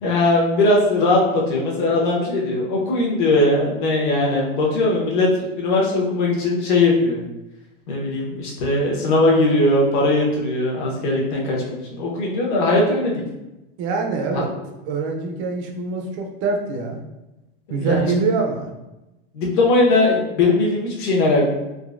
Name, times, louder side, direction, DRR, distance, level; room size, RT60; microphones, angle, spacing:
voice 1, 0.0-7.2 7.9-13.2 14.3-14.4 17.7-18.3 19.3-21.5, left 2 dB, 55° left, -3 dB, 1.0 m, -19 dB
voice 2, 13.8-14.5 14.8-17.0 17.7-18.7, right 4 dB, 35° right, 2 dB, 0.4 m, -24 dB
3.8 x 2.6 x 2.4 m, 0.98 s
supercardioid pair, 160°, 30 cm